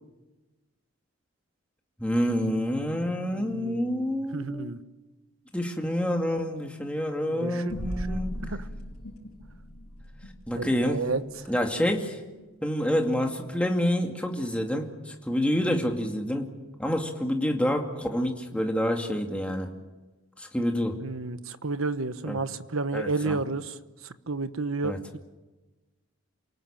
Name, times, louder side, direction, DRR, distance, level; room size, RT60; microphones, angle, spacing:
voice 1, 2.0-4.8 5.5-8.4 10.5-11.0 11.5-12.2 12.6-16.5 16.8-19.7 20.4-21.0 22.2-22.4 22.9-23.4 24.8-25.0, equal, 5° left, 2 dB, 2.3 m, -28 dB
voice 2, 3.3-4.8 7.3-7.6 8.0-8.6 10.5-11.2 21.0-23.8 24.0-25.2, right 3 dB, 80° right, 11 dB, 1.2 m, -32 dB
sound 1, 7.7-12.5, equal, 85° left, 4.2 m, -39 dB
29.0 x 19.0 x 7.4 m, 1.1 s
head